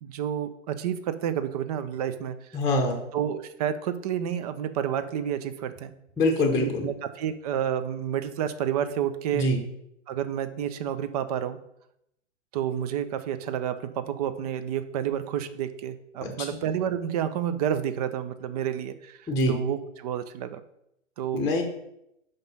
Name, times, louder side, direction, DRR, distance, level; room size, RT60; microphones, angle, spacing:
voice 1, 0.0-2.4 3.1-5.9 6.6-9.5 10.1-11.6 12.5-20.6 21.2-21.4, right 9 dB, 30° right, 12 dB, 0.5 m, -30 dB
voice 2, 2.5-3.0 6.2-6.9 9.3-9.6 16.2-16.5 19.3-19.5 21.3-21.6, left 1 dB, 10° left, 2 dB, 0.8 m, -24 dB
5.3 x 5.3 x 5.4 m, 0.80 s
hypercardioid pair, 125°, 38 cm